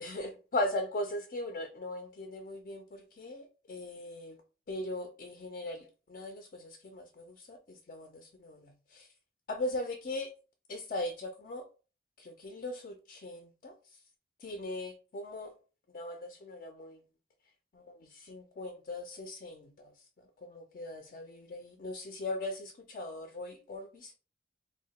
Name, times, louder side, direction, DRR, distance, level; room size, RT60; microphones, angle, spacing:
voice 1, 0.0-4.4 4.7-9.1 9.5-10.3 10.7-11.7 12.2-14.0 14.4-15.5 15.9-17.0 17.7-24.1, left 1 dB, 45° left, 0.3 m, -39 dB
2.8 x 2.1 x 3.9 m
head